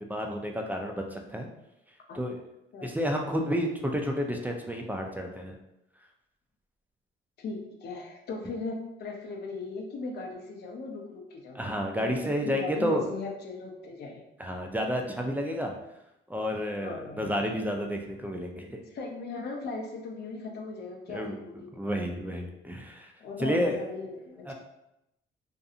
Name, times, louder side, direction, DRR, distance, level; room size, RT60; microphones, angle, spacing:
voice 1, 0.1-1.5 2.1-2.4 2.8-5.6 11.6-13.0 14.4-15.7 16.3-18.8 21.1-21.4 21.7-23.1 23.4-23.8 24.5-24.6, equal, 10° right, 2 dB, 0.4 m, -30 dB
voice 2, 2.7-3.1 7.4-11.6 12.0-14.2 16.8-17.3 18.9-21.8 23.2-24.5, left 3 dB, 55° left, 2 dB, 0.5 m, -38 dB
2.6 x 2.5 x 2.4 m, 0.86 s
cardioid pair, 90°, 20 cm